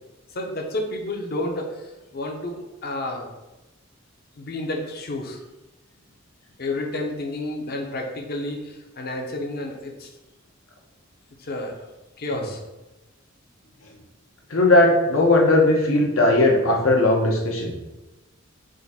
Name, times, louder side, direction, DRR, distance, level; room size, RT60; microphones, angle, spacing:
voice 1, 0.3-1.9 2.1-3.3 4.3-5.4 6.6-10.1 11.4-11.7 12.2-12.6, left 2 dB, 50° left, 2 dB, 0.6 m, -30 dB
voice 2, 14.5-17.7, left 2 dB, 80° left, 0 dB, 0.8 m, -18 dB
3.7 x 2.6 x 4.1 m, 1.0 s
head